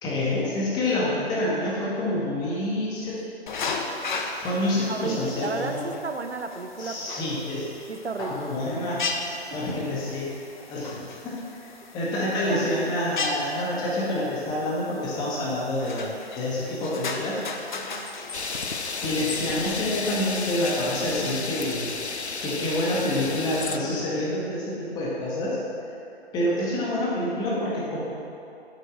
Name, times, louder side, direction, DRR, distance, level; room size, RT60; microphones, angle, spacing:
voice 1, 0.0-3.2 4.4-5.9 6.8-7.7 8.2-9.0 9.5-10.3 10.7-17.7 19.0-21.9 22.4-25.6 26.3-28.0, left 1 dB, 10° left, -6 dB, 1.7 m, -27 dB
sound 1, 3.5-21.3, left 4 dB, 45° left, 0.9 m, -37 dB
voice 2, 4.9-7.4 7.9-8.5 9.5-9.6 12.2-13.0 17.7-18.1, right 4 dB, 80° right, 7 dB, 0.9 m, -34 dB
sound 2, 18.3-23.8, left 4 dB, 85° left, 0.7 m, -32 dB
8.5 x 7.7 x 6.3 m, 2.8 s
figure-of-eight pair, 135°, 32 cm